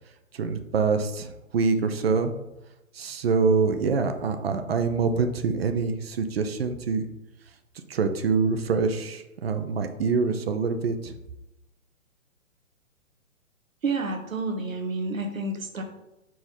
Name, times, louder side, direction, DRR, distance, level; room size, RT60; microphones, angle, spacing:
voice 1, 0.3-2.3 2.9-7.0 7.9-11.1, right 4 dB, 50° right, 7 dB, 0.7 m, -25 dB
voice 2, 13.8-15.8, right 3 dB, 75° right, 4 dB, 1.5 m, -29 dB
5.6 x 4.7 x 4.5 m, 0.91 s
figure-of-eight pair, 125°, 40 cm